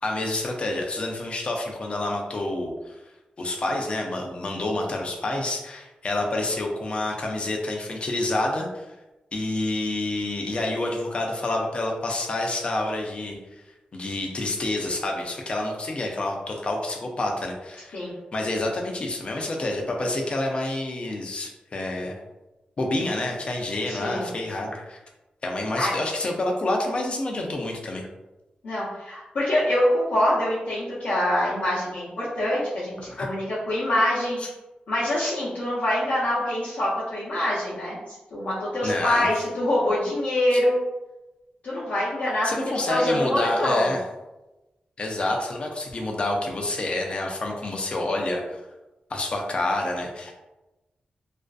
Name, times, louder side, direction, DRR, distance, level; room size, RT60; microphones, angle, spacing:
voice 1, 0.0-3.0 3.4-8.9 9.3-13.6 13.9-18.0 18.3-22.2 22.8-25.0 25.4-28.1 33.1-33.3 34.4-34.5 38.8-39.3 40.5-40.6 42.4-44.0 45.0-48.6 49.1-50.4, left 2 dB, 40° left, 1 dB, 0.4 m, -28 dB
voice 2, 23.9-24.3 25.8-25.9 28.6-34.4 34.9-40.8 41.6-42.5 42.9-43.9, left 1 dB, 85° left, -11 dB, 0.7 m, -25 dB
2.5 x 2.4 x 2.3 m, 1.0 s
wide cardioid pair, 150°, 3 cm